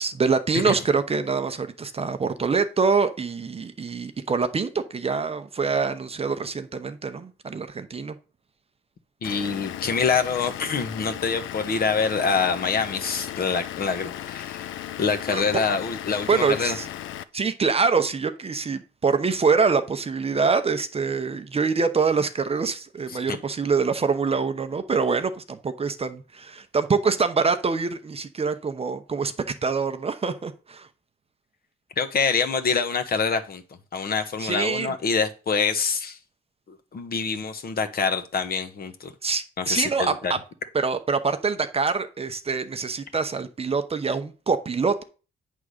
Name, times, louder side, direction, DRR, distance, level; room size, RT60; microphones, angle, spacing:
voice 1, 0.0-8.2 15.3-15.6 16.3-16.9 17.3-29.3 29.6-30.9 34.4-34.9 39.2-40.4 40.7-45.0, right 5 dB, 30° right, 0.8 m, -25 dB
Vehicle / Engine, 9.2-17.2, left 12 dB, 80° left, 0.5 m, -36 dB
voice 2, 9.2-14.7 15.0-16.8 23.1-23.4 32.0-33.6 33.9-36.2 36.7-39.1 39.6-40.3, left 5 dB, 50° left, 1.2 m, -25 dB
8.3 x 3.6 x 6.5 m
cardioid pair, 90°, 20 cm